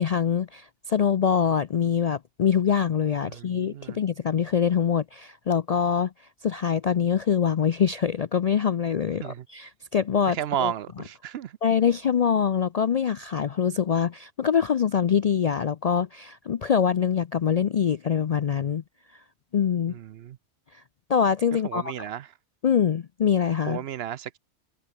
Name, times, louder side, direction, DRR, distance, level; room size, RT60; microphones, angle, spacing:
voice 1, 0.0-6.1 6.4-10.7 11.6-18.8 19.5-19.9 21.1-21.9 22.6-23.8, left 7 dB, 55° left, 0.4 m, -24 dB
voice 2, 3.2-4.0 9.2-9.4 10.3-11.5 19.9-20.4 21.6-22.3 23.7-24.4, right 10 dB, 65° right, 0.8 m, -33 dB
omnidirectional pair, 1.2 m